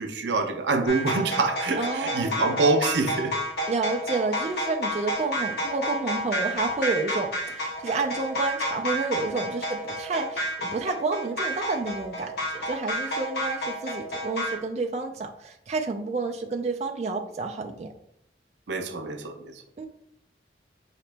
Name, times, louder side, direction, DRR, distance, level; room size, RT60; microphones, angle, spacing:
voice 1, 0.0-3.3 18.7-19.6, right 3 dB, 90° right, 6 dB, 0.6 m, -25 dB
sound 1, 0.9-14.5, equal, 65° left, 1.3 m, -30 dB
voice 2, 1.8-2.4 3.7-17.9 19.8-19.9, right 3 dB, 40° right, 3 dB, 0.3 m, -30 dB
5.1 x 2.9 x 3.3 m, 0.73 s
head